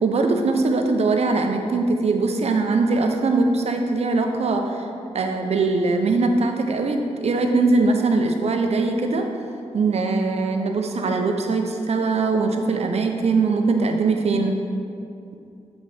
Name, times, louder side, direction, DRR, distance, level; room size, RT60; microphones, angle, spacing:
voice 1, 0.0-4.8 5.1-9.3 9.7-14.6, right 3 dB, 65° right, 4 dB, 0.7 m, -21 dB
7.9 x 4.1 x 4.9 m, 2.6 s
wide cardioid pair, 105°, 12 cm